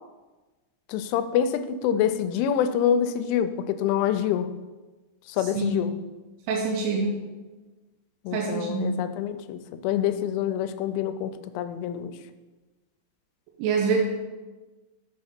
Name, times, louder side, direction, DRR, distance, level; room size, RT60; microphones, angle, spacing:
voice 1, 0.9-4.5 5.3-5.9 8.2-12.2, left 9 dB, 85° left, 10 dB, 3.0 m, -26 dB
voice 2, 6.5-7.1 8.3-9.0 13.6-14.0, right 4 dB, 90° right, 0 dB, 3.2 m, -25 dB
7.8 x 5.7 x 4.3 m, 1.2 s
omnidirectional pair, 5.5 m